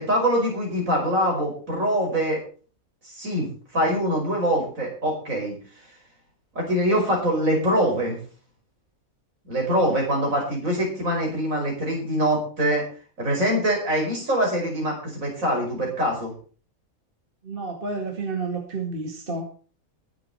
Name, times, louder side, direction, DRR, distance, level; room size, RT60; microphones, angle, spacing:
voice 1, 0.0-2.4 3.1-5.6 6.6-8.2 9.5-12.8 13.2-16.3, equal, 65° right, -1 dB, 6.0 m, -24 dB
voice 2, 17.4-19.5, right 3 dB, 40° right, 2 dB, 2.1 m, -30 dB
21.5 x 7.7 x 4.3 m, 0.39 s
omnidirectional pair, 1.5 m